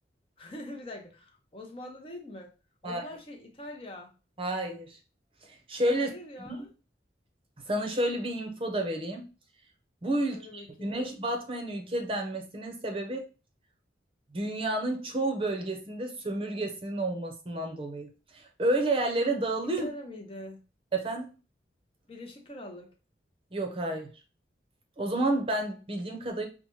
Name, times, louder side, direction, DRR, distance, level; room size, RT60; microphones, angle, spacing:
voice 1, 0.4-2.5 2.8-4.1 5.9-6.7 10.3-11.0 19.8-20.6 22.1-22.9, left 1 dB, 30° left, 2 dB, 0.7 m, -43 dB
voice 2, 4.4-5.0 5.4-6.1 6.4-6.6 7.7-9.3 10.0-13.2 14.3-19.9 20.9-21.3 23.5-24.1 25.0-26.5, right 1 dB, 30° right, 3 dB, 0.7 m, -30 dB
5.5 x 2.1 x 3.0 m, 0.33 s
head